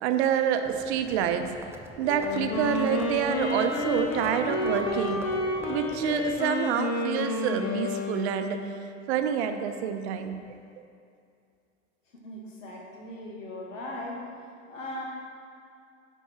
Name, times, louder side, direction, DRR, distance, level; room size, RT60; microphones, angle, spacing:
voice 1, 0.0-1.5 2.0-5.3 5.7-8.6 9.1-10.4, right 8 dB, 60° right, 7 dB, 0.7 m, -27 dB
Livestock farm animals working animals, 0.6-6.4, right 3 dB, 5° right, 0.3 m, -43 dB
Wind instrument woodwind instrument, 2.1-8.8, left 2 dB, 60° left, 1.2 m, -30 dB
voice 2, 12.1-14.2 14.7-15.0, left 1 dB, 75° left, -2 dB, 1.7 m, -38 dB
9.8 x 4.5 x 4.3 m, 2.4 s
figure-of-eight pair, 80°, 38 cm